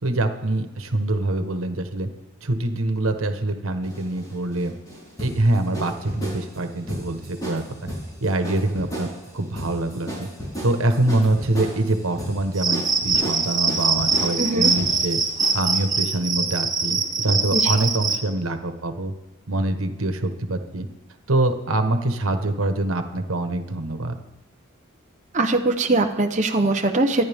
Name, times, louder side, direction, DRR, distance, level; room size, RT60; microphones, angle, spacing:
voice 1, 0.0-2.1 2.4-4.7 5.2-7.6 8.2-9.1 9.3-10.3 10.6-15.2 15.5-19.1 19.5-20.9 21.3-24.2, right 2 dB, 90° right, 7 dB, 1.3 m, -24 dB
sound 1, 3.8-15.8, right 1 dB, 20° left, 5.3 m, -34 dB
Cricket, 12.6-18.2, right 4 dB, 20° right, 1.2 m, -23 dB
voice 2, 14.4-14.7 17.5-17.7 25.3-27.3, right 2 dB, 35° right, 2 dB, 0.9 m, -21 dB
24.5 x 10.5 x 3.6 m, 1.1 s
head